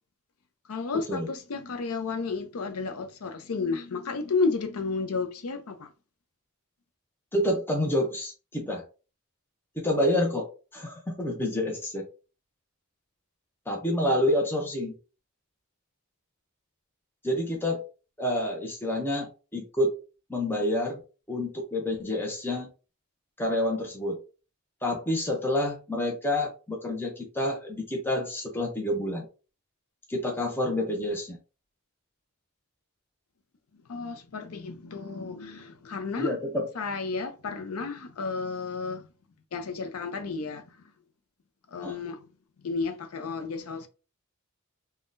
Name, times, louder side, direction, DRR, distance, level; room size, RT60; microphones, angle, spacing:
voice 1, 0.7-5.9 33.9-36.3 36.8-39.0 39.5-40.6 41.7-42.2 42.6-43.9, left 4 dB, 75° left, 0.5 m, -32 dB
voice 2, 7.3-8.8 9.8-10.5 10.7-12.0 13.7-15.0 17.2-17.8 18.2-19.9 20.3-21.0 21.3-22.7 23.4-24.2 24.8-29.3 30.1-31.4 36.2-36.7 41.8-41.9, left 1 dB, 10° left, 0.6 m, -28 dB
3.6 x 2.2 x 2.5 m
head